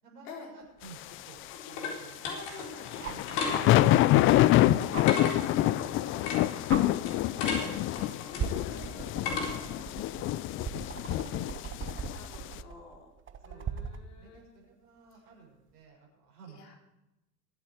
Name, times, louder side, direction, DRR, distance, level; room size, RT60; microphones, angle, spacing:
voice 1, 0.0-1.4 1.7-2.7 3.0-4.7 5.7-7.9 8.1-11.8 13.4-13.8 14.1-16.8, right 5 dB, 85° right, -2 dB, 6.7 m, -55 dB
sound 1, 0.8-9.8, left 4 dB, 55° left, 4.3 m, -38 dB
sound 2, 0.8-0.9 3.0-3.3 4.9-5.1 6.2-6.3 6.7-6.8 7.7-8.0 8.4-14.0 15.7-15.8, right 7 dB, 25° right, 1.3 m, -38 dB
voice 2, 2.2-3.5 5.1-5.7 8.3-9.0 11.1-13.1 13.4-14.6 16.5-16.8, left 4 dB, 70° left, 0 dB, 4.3 m, -48 dB
sound 3, 2.8-12.4, left 14 dB, 30° left, 0.4 m, -26 dB
23.0 x 8.3 x 4.9 m, 0.92 s
hypercardioid pair, 90°, 47 cm